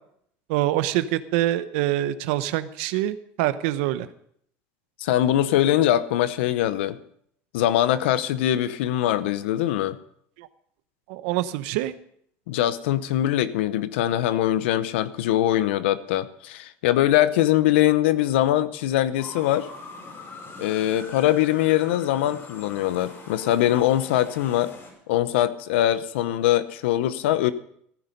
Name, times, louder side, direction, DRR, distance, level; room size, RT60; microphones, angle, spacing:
voice 1, 0.5-4.1 10.4-10.5 11.1-11.9, right 14 dB, 80° right, 13 dB, 0.9 m, -25 dB
voice 2, 5.0-7.0 7.5-10.0 12.5-19.7 20.6-24.7 25.1-27.5, left 13 dB, 85° left, 15 dB, 0.8 m, -22 dB
sound 1, 19.2-24.9, left 2 dB, 45° left, 5.6 m, -43 dB
15.5 x 10.0 x 5.3 m, 0.67 s
supercardioid pair, 95°, 6 cm